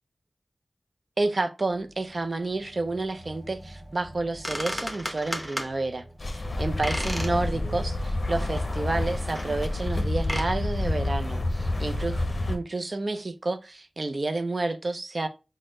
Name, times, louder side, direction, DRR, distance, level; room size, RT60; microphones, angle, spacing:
voice 1, 1.2-6.1 6.3-15.3, right 2 dB, 55° right, 0.4 m, -30 dB
sound 1, 1.7-12.8, right 1 dB, 35° right, 1.3 m, -51 dB
sound 2, 4.1-4.2 4.4-5.7 6.8-7.4 7.8-7.9 8.5-8.6 9.4-9.5 10.2-10.5, equal, 10° left, 0.7 m, -33 dB
sound 3, 6.2-12.6, left 2 dB, 55° left, 0.5 m, -28 dB
4.1 x 2.1 x 3.6 m
cardioid pair, 45°, 0 cm